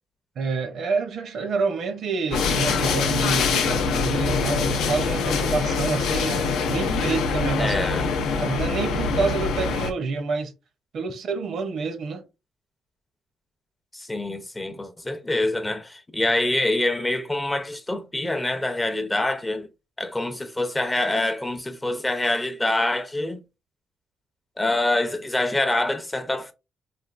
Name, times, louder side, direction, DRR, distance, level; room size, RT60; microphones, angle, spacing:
voice 1, 0.4-7.7 8.3-10.5 10.9-12.2, right 4 dB, 65° right, 0.6 m, -28 dB
sound 1, 2.3-9.9, left 5 dB, 85° left, 0.5 m, -24 dB
voice 2, 7.6-8.1 13.9-19.7 20.0-23.4 24.6-26.5, left 2 dB, 15° left, 0.5 m, -25 dB
3.3 x 2.3 x 2.4 m
cardioid pair, 90°, 0 cm